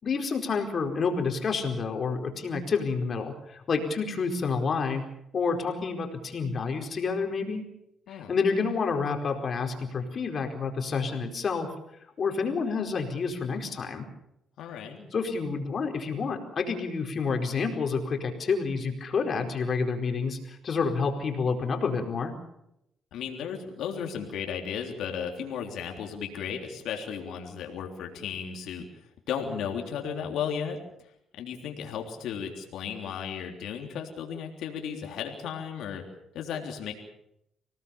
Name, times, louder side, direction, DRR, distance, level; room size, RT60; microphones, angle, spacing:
voice 1, 0.0-5.0 5.3-7.6 8.1-11.7 12.2-14.1 15.1-22.3, left 5 dB, 50° left, 4 dB, 4.6 m, -29 dB
voice 2, 14.6-15.1 23.1-28.9 29.3-30.8 31.4-36.0 36.3-36.9, left 7 dB, 80° left, 2 dB, 3.4 m, -35 dB
25.5 x 18.5 x 7.2 m, 0.80 s
cardioid pair, 90°, 0 cm